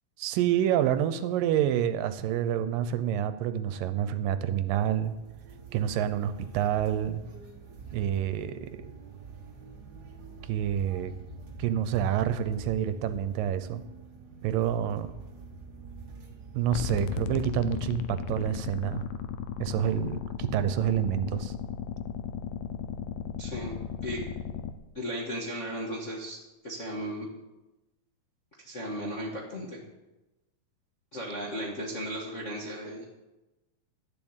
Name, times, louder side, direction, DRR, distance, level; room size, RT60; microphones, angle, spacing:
voice 1, 0.2-5.1 5.7-7.2 7.9-8.9 10.5-11.1 11.6-13.8 14.4-15.1 16.5-19.0 19.6-21.5, right 10 dB, 80° right, 12 dB, 2.3 m, -28 dB
sound 1, 4.5-17.5, right 4 dB, 55° right, 1.1 m, -46 dB
sound 2, 16.7-24.7, left 8 dB, 85° left, 2.4 m, -35 dB
voice 2, 23.4-23.7 24.0-24.2 24.9-26.4 26.6-27.3 28.6-29.8 31.1-33.1, equal, 40° left, -3 dB, 1.0 m, -35 dB
12.0 x 7.3 x 8.0 m, 1.0 s
omnidirectional pair, 4.0 m